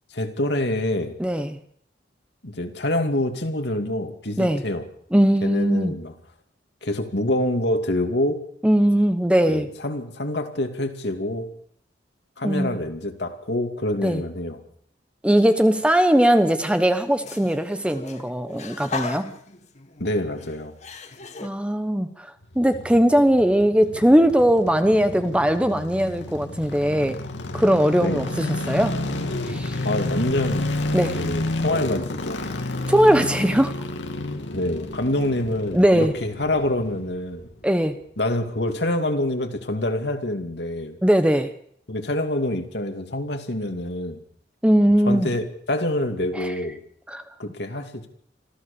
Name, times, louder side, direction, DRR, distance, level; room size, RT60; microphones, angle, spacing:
voice 1, 0.1-1.1 2.4-4.9 5.4-6.1 6.8-8.4 9.5-11.5 12.4-14.6 20.0-20.7 28.0-28.3 29.8-30.7 31.1-32.5 34.5-37.5 38.2-41.0 41.9-44.2 45.1-45.4 45.7-46.8 47.4-48.1, left 1 dB, 65° left, 5 dB, 2.7 m, -26 dB
voice 2, 1.2-1.6 4.4-4.6 5.1-5.9 8.6-9.7 12.4-12.8 14.0-14.2 15.2-19.3 21.4-27.2 27.5-29.0 29.5-29.8 30.9-31.2 32.9-33.7 35.7-36.1 37.6-38.0 41.0-41.5 44.6-45.3 46.4-46.5 47.1-47.2, equal, 5° right, 9 dB, 1.1 m, -20 dB
sound 1, 15.4-16.0 16.3-21.5, left 3 dB, 40° left, 1.6 m, -37 dB
sound 2, 22.4-37.7 37.9-38.0, left 2 dB, 80° left, 2.4 m, -31 dB
26.0 x 14.5 x 7.0 m, 0.64 s
head